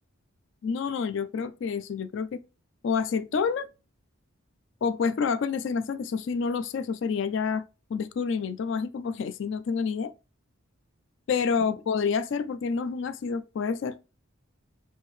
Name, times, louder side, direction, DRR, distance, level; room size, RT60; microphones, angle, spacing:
voice 1, 0.6-2.4 2.8-3.7 4.8-7.6 7.9-10.1 11.3-14.0, left 5 dB, 55° left, 0.3 m, -28 dB
4.4 x 2.7 x 3.1 m
head